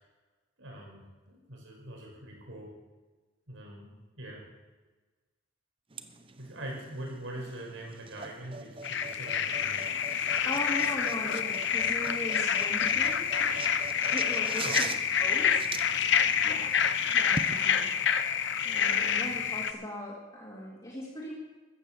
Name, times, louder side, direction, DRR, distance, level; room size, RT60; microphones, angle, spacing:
voice 1, 0.6-2.7 3.5-4.4 6.4-9.8 14.6-14.8, right 1 dB, 85° right, -1 dB, 5.2 m, -43 dB
sound 1, 5.9-17.5, right 4 dB, 30° right, 0.8 m, -42 dB
sound 2, 8.8-19.7, left 7 dB, 65° left, 0.8 m, -28 dB
voice 2, 10.4-13.8 14.1-14.9 15.2-15.6 16.4-16.8 17.1-18.4 18.6-21.3, left 1 dB, 25° left, -5 dB, 2.5 m, -39 dB
14.0 x 9.1 x 7.3 m, 1.3 s
head